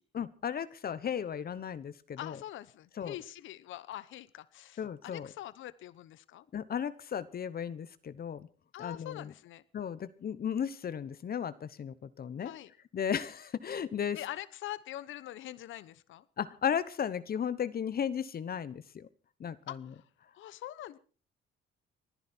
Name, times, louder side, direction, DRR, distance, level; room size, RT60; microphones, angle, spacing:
voice 1, 0.1-2.4 3.0-3.1 4.8-5.3 6.5-8.5 8.8-9.3 9.7-12.5 12.9-14.2 16.4-19.1 19.4-19.8, left 8 dB, 50° left, 15 dB, 1.0 m, -35 dB
voice 2, 2.2-6.5 8.7-9.6 12.4-12.7 14.1-16.2 19.7-20.1 20.3-21.0, left 13 dB, 80° left, 17 dB, 0.9 m, -44 dB
30.0 x 10.5 x 4.4 m, 0.37 s
cardioid pair, 90°, 20 cm